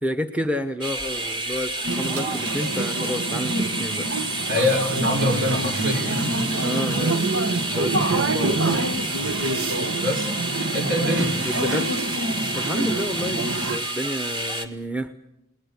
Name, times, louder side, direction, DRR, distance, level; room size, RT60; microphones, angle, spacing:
voice 1, 0.0-4.1 6.6-7.2 7.7-8.8 11.4-11.9 12.5-15.1, equal, 5° right, 8 dB, 1.0 m, -30 dB
sound 1, 0.8-14.7, right 1 dB, 25° right, 1.9 m, -30 dB
sound 2, 1.8-13.8, right 2 dB, 90° right, 1.4 m, -27 dB
voice 2, 4.5-6.5 10.0-10.3 10.7-11.4, left 1 dB, 65° right, 5 dB, 5.0 m, -24 dB
29.5 x 20.0 x 8.2 m, 0.85 s
head